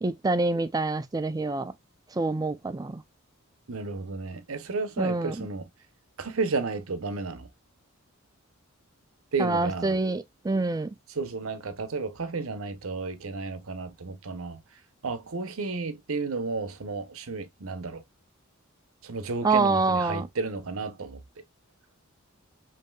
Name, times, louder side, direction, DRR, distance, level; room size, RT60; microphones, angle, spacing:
voice 1, 0.0-1.7 2.1-3.0 5.0-5.5 9.4-10.9 19.4-20.3, right 3 dB, 15° right, 0.4 m, -26 dB
voice 2, 3.7-5.7 6.2-7.5 9.3-10.0 11.1-18.0 19.0-21.4, right 4 dB, 70° right, 0.8 m, -32 dB
5.4 x 2.8 x 2.3 m
head